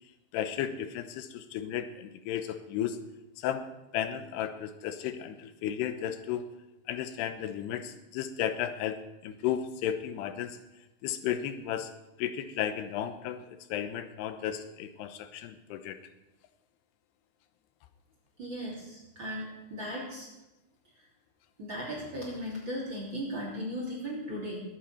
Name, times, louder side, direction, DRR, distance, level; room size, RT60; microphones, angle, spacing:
voice 1, 0.3-3.0 3.4-3.7 3.9-6.4 6.9-10.6 11.0-11.9 12.2-13.4 13.7-16.0, left 10 dB, 90° left, 10 dB, 3.0 m, -34 dB
voice 2, 18.4-20.3 21.6-24.6, equal, 30° right, -4 dB, 3.4 m, -37 dB
20.5 x 9.2 x 4.4 m, 0.97 s
omnidirectional pair, 4.6 m